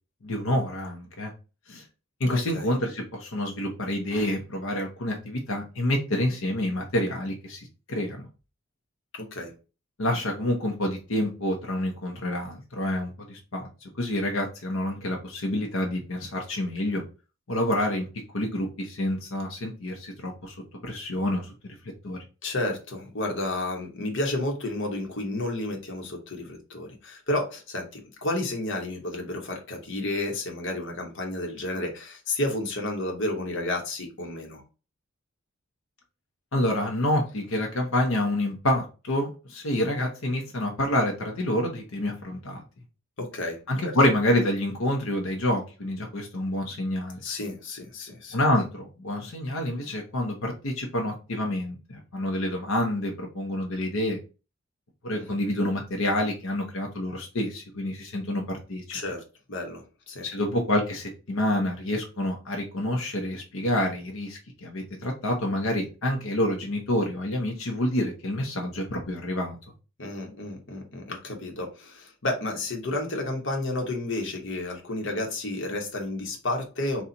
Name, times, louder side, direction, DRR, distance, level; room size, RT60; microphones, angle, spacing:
voice 1, 0.2-1.3 1.7-1.8 2.2-7.6 7.9-8.3 10.0-13.7 14.0-17.0 17.5-18.1 18.3-20.5 20.8-21.5 22.0-22.2 36.5-42.6 43.7-47.2 48.3-54.2 55.0-59.0 60.2-69.6, left 1 dB, 80° left, 0.9 m, -28 dB
voice 2, 2.3-2.7 9.1-9.5 22.4-34.6 43.2-43.9 47.2-48.4 55.3-55.4 58.9-59.2 59.5-60.3 70.0-77.0, left 2 dB, 60° left, 1.1 m, -31 dB
4.2 x 2.4 x 3.9 m
head